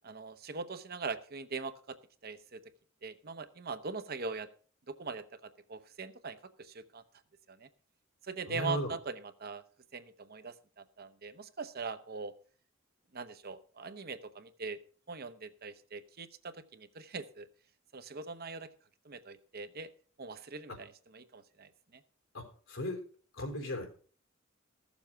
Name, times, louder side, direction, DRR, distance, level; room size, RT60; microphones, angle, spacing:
voice 1, 0.0-2.0 2.2-2.6 3.0-4.5 4.9-7.0 7.5-7.7 8.2-9.6 9.9-12.3 13.1-14.8 15.1-17.5 17.9-18.7 19.0-19.9 20.2-22.0, right 4 dB, 50° right, 10 dB, 0.9 m, -42 dB
voice 2, 8.5-8.9 20.7-20.8 22.3-23.0 23.3-23.9, equal, 75° left, 3 dB, 3.6 m, -36 dB
15.0 x 7.2 x 5.7 m, 0.42 s
head